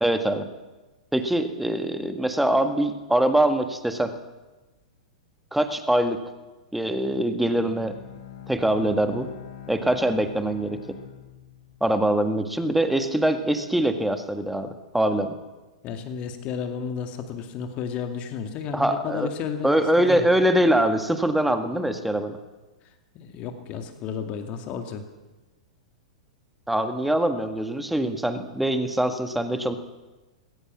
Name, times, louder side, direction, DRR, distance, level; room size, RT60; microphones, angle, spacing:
voice 1, 0.0-0.5 1.1-4.1 5.5-6.2 6.7-7.9 8.5-9.3 9.7-10.8 11.8-15.3 18.7-19.3 19.6-22.4 26.7-29.8, right 1 dB, 5° right, 8 dB, 1.7 m, -23 dB
Bowed string instrument, 7.4-12.4, left 9 dB, 50° left, 5.2 m, -44 dB
voice 2, 15.8-20.3 23.1-25.1, left 7 dB, 35° left, 5 dB, 2.2 m, -32 dB
20.0 x 18.0 x 7.4 m, 1.2 s
figure-of-eight pair, 100°, 4 cm